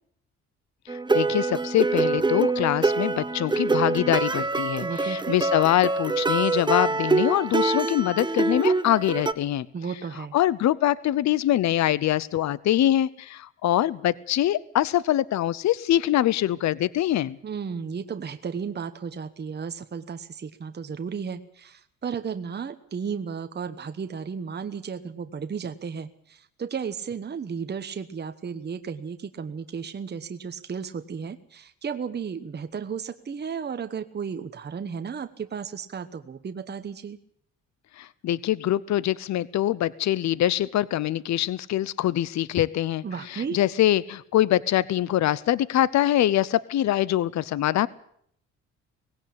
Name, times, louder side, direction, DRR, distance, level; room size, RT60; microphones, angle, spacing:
voice 1, 0.9-9.7 10.3-17.4 38.0-47.9, left 13 dB, 65° left, 20 dB, 0.7 m, -24 dB
sound 1, 0.9-9.3, right 3 dB, 15° right, 1.0 m, -25 dB
voice 2, 4.8-5.4 9.7-10.3 17.4-37.2 43.0-43.6, right 6 dB, 35° right, 9 dB, 1.1 m, -34 dB
19.0 x 16.5 x 8.7 m, 0.68 s
cardioid pair, 90°, 30 cm